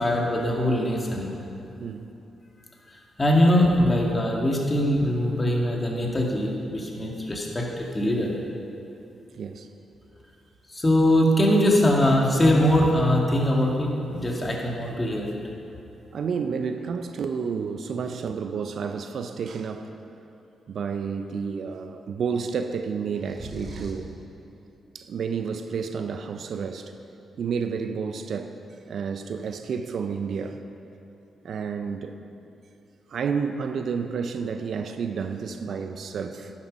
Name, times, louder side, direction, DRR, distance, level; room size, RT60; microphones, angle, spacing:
voice 1, 0.0-1.4 3.2-8.3 10.7-15.4, left 1 dB, 30° left, -1 dB, 2.2 m, -22 dB
voice 2, 9.4-9.7 16.1-19.9 20.7-24.1 24.9-26.9 27.4-28.6 28.9-30.6 31.4-32.2 33.1-36.5, right 6 dB, 65° right, 8 dB, 0.5 m, -30 dB
sound 1, 23.2-24.1, right 2 dB, 30° right, 2.6 m, -38 dB
11.0 x 7.4 x 5.3 m, 2.9 s
hypercardioid pair, 40°, 0 cm